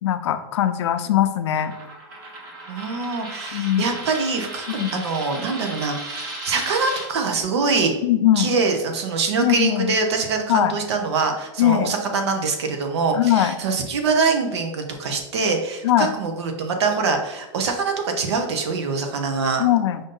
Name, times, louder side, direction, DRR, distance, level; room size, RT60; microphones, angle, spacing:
voice 1, 0.0-1.7 3.5-3.9 4.7-5.0 8.0-8.5 9.4-9.9 10.5-10.8 11.6-11.9 13.1-13.5 15.8-16.1 19.6-20.0, left 12 dB, 80° left, 10 dB, 0.5 m, -20 dB
Coin (dropping), 1.6-7.1, right 2 dB, 50° right, 1.1 m, -35 dB
voice 2, 2.7-7.9 8.4-19.6, right 4 dB, 70° right, 4 dB, 0.8 m, -24 dB
5.2 x 2.6 x 3.7 m, 0.97 s
supercardioid pair, 180°, 14 cm